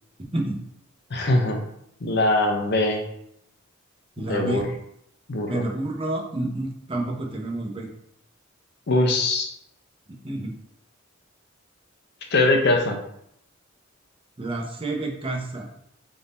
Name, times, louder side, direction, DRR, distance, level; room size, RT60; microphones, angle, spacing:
voice 1, 1.1-1.6 2.0-3.0 4.2-4.6 5.3-5.6 8.9-9.5 12.3-13.0, left 2 dB, 55° left, 3 dB, 0.6 m, -22 dB
voice 2, 4.2-4.7 5.5-7.9 10.1-10.5 14.4-15.7, right 2 dB, 25° right, 0 dB, 0.7 m, -29 dB
3.6 x 2.7 x 4.1 m, 0.73 s
head